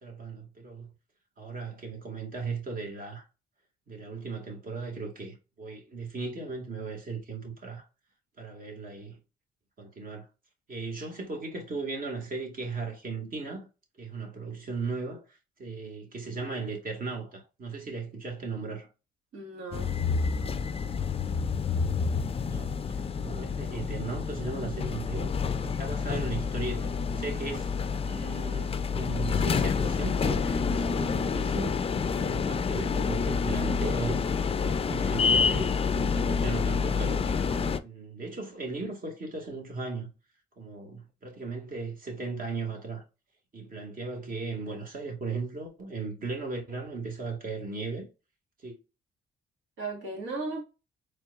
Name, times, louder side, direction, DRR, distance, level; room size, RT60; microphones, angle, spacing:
voice 1, 0.0-0.9 1.4-3.2 3.9-7.9 8.4-9.2 9.8-10.3 10.7-13.7 14.0-18.9 22.4-25.3 25.6-27.7 28.1-40.1 40.6-43.0 43.5-48.1 48.6-48.8, right 4 dB, 45° right, 1.9 m, -37 dB
voice 2, 19.3-20.0 23.5-23.9 49.8-50.6, right 3 dB, 80° right, 1.9 m, -37 dB
sound 1, 19.7-37.8, left 5 dB, 30° left, 0.4 m, -28 dB
4.4 x 3.2 x 2.4 m
cardioid pair, 90°, 20 cm